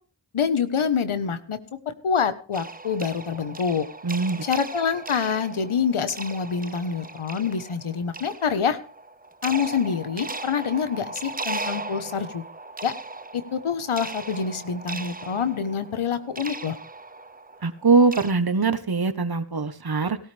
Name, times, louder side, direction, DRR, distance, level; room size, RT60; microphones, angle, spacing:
voice 1, 0.3-3.8 4.4-8.8 9.4-12.4 12.8-12.9 13.3-16.8, left 6 dB, 85° left, 11 dB, 1.4 m, -26 dB
sound 1, 2.5-18.3, right 3 dB, 20° right, 0.8 m, -38 dB
voice 2, 4.0-4.4 17.6-20.2, right 4 dB, 50° right, 11 dB, 1.4 m, -22 dB
18.0 x 13.5 x 3.5 m, 0.38 s
cardioid pair, 45°, 48 cm